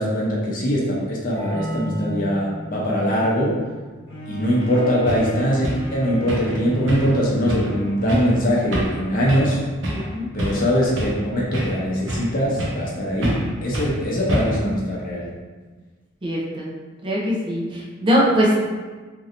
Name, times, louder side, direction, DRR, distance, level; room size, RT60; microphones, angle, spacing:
voice 1, 0.0-3.6 4.3-9.6 10.3-15.3, equal, 45° left, -4 dB, 0.7 m, -22 dB
sound 1, 1.4-6.8, equal, 10° left, 1.1 m, -36 dB
Bowed string instrument, 4.1-9.7 10.3-10.4, right 2 dB, 65° left, 1.1 m, -37 dB
sound 2, 4.6-4.7 5.1-5.3 5.6-5.9 6.3-6.6 6.9-7.2 7.5-7.7 8.1-8.3 8.7-9.0 9.3-9.5 9.8-10.1 10.4-11.2 11.5-12.3 12.6-12.9 13.2-13.5 13.7-14.0 14.3-14.7, equal, 70° right, 0.7 m, -26 dB
voice 2, 9.9-10.3 16.2-16.7 17.0-18.6, equal, 25° right, -4 dB, 0.5 m, -21 dB
3.0 x 2.7 x 2.5 m, 1.3 s
head